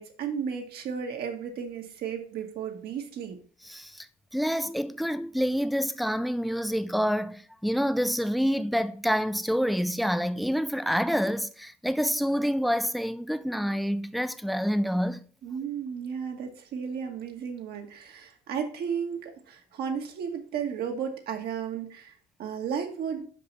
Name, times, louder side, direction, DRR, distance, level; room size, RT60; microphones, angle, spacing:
voice 1, 0.0-3.4 15.4-23.3, right 7 dB, 70° right, 1.5 m, -34 dB
voice 2, 3.7-4.1 4.3-15.2, equal, ahead, 0.4 m, -27 dB
5.5 x 5.3 x 5.2 m
cardioid pair, 110°, 17 cm